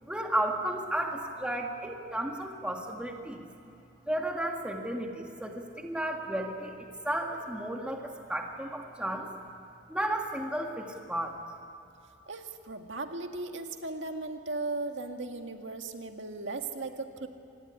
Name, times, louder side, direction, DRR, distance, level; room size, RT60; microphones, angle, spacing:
voice 1, 0.0-3.7 4.1-9.3 9.9-11.4, right 1 dB, 5° right, 2 dB, 1.9 m, -33 dB
voice 2, 12.3-17.3, right 3 dB, 65° right, 5 dB, 1.9 m, -37 dB
25.5 x 19.5 x 9.9 m, 2.8 s
head